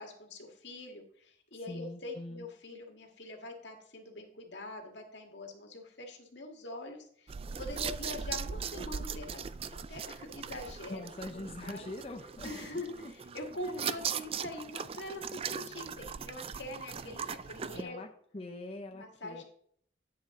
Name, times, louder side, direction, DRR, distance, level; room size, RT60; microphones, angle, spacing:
voice 1, 0.0-11.0 11.3-11.9 12.4-18.0 18.9-19.4, left 2 dB, 80° left, 2 dB, 1.9 m, -44 dB
voice 2, 1.7-2.5 10.9-12.6 12.9-13.9 17.7-18.1 18.3-19.4, left 2 dB, 35° left, 3 dB, 0.7 m, -43 dB
sound 1, 7.3-17.8, right 6 dB, 35° right, 0.3 m, -39 dB
9.9 x 7.1 x 3.8 m, 0.62 s
head